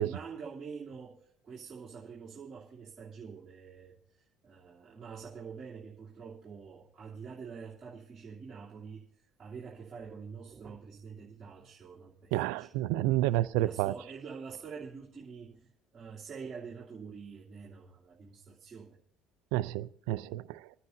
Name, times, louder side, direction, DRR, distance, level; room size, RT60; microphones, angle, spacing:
voice 1, 0.0-9.0 9.4-13.1 13.5-19.0, right 5 dB, 30° right, -8 dB, 2.9 m, -46 dB
voice 2, 12.3-13.9 19.5-20.6, right 15 dB, 85° right, 15 dB, 0.5 m, -30 dB
28.5 x 9.7 x 2.7 m, 0.67 s
supercardioid pair, 95°, 0 cm